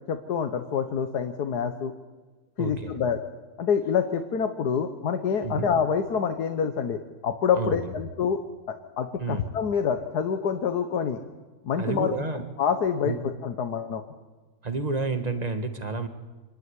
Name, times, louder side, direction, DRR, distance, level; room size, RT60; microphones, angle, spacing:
voice 1, 0.1-1.9 2.6-3.2 3.6-8.4 8.7-11.2 11.6-12.1 12.6-13.2 13.4-14.0, left 7 dB, 85° left, 7 dB, 1.7 m, -26 dB
voice 2, 2.6-3.0 5.4-5.7 7.5-7.9 9.2-9.5 11.8-12.4 13.0-13.2 14.6-16.1, right 3 dB, 25° right, 7 dB, 1.6 m, -30 dB
25.5 x 12.0 x 9.8 m, 1.3 s
omnidirectional pair, 1.6 m